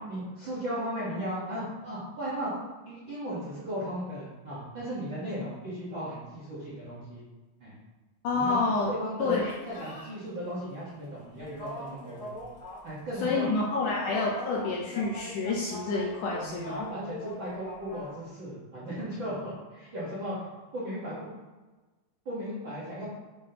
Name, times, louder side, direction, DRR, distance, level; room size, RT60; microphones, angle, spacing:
voice 1, 0.1-2.5 2.8-7.2 7.6-7.7 8.3-8.6 8.9-9.3 9.6-12.3 12.8-13.5 13.8-13.9 16.4-21.3 22.2-23.0, equal, 55° right, -9 dB, 1.3 m, -36 dB
voice 2, 8.2-8.9 9.2-9.5 13.2-16.9, left 3 dB, 75° left, -2 dB, 1.9 m, -28 dB
sound 1, 9.4-10.2 11.3-13.0 13.7-18.1, left 1 dB, 40° left, 1.2 m, -42 dB
7.3 x 5.3 x 2.9 m, 1.2 s
omnidirectional pair, 4.3 m